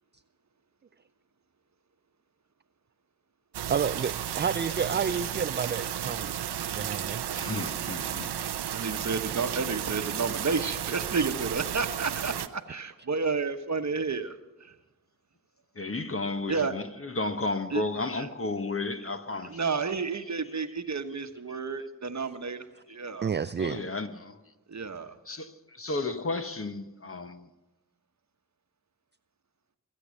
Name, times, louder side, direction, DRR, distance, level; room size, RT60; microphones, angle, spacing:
sound 1, 3.5-12.5, right 10 dB, 90° right, 0.7 m, -33 dB
voice 1, 3.7-6.4 6.7-7.3 23.2-23.8, right 6 dB, 30° right, 0.4 m, -30 dB
sound 2, 4.2-4.8 5.8-5.9 6.1-6.2 7.7-8.4, left 1 dB, 75° left, 4.5 m, -53 dB
voice 2, 7.3-8.3 15.7-19.6 23.6-24.4 25.3-27.5, left 3 dB, 35° left, 1.2 m, -33 dB
voice 3, 8.7-14.7 16.5-16.7 17.7-17.8 18.1-18.3 19.5-23.3 24.7-25.4, right 4 dB, 45° right, 1.1 m, -31 dB
22.0 x 8.5 x 6.4 m
cardioid pair, 40°, 39 cm